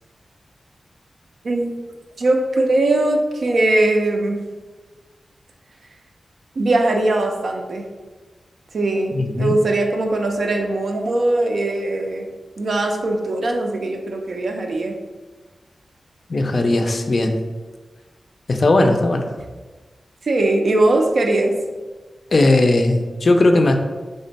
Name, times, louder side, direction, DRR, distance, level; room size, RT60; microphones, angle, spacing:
voice 1, 2.2-4.4 6.6-7.9 8.7-12.3 12.6-15.0 20.2-21.5, right 2 dB, 70° right, 2 dB, 0.4 m, -20 dB
voice 2, 9.1-9.5 16.3-17.4 18.5-19.2 22.3-23.7, left 2 dB, 50° left, 5 dB, 0.3 m, -17 dB
3.5 x 2.1 x 3.9 m, 1.3 s
wide cardioid pair, 90°, 0 cm